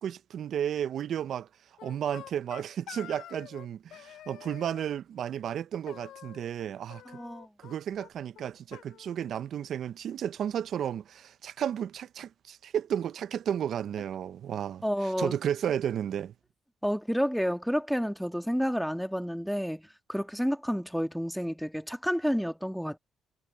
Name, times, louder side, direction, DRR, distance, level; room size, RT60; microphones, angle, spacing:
voice 1, 0.0-1.5 1.8-7.0 7.6-16.3, right 9 dB, 65° right, 0.5 m, -33 dB
sound 1, 1.8-3.7 3.9-4.9 5.9-6.6 6.9-7.7 8.0-8.1 8.3-8.4 8.7-9.8, left 12 dB, 80° left, 5.4 m, -48 dB
voice 2, 7.1-7.5 14.8-15.3 16.8-23.0, equal, ahead, 1.6 m, -30 dB
cardioid pair, 90°, 0 cm